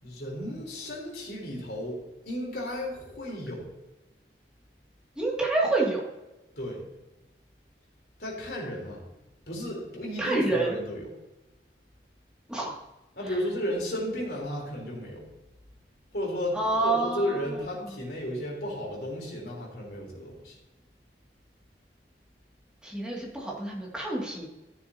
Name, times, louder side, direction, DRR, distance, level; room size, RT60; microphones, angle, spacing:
voice 1, 0.0-2.0 2.3-3.7 6.6-6.9 8.2-9.0 9.5-11.1 13.2-15.2 16.1-16.6 16.8-20.6, equal, 60° left, -2 dB, 3.5 m, -33 dB
voice 2, 5.2-6.0 10.2-10.8 12.5-12.7 16.5-17.4 22.8-24.4, right 2 dB, 5° right, -4 dB, 2.1 m, -27 dB
14.0 x 6.9 x 2.8 m, 1.0 s
head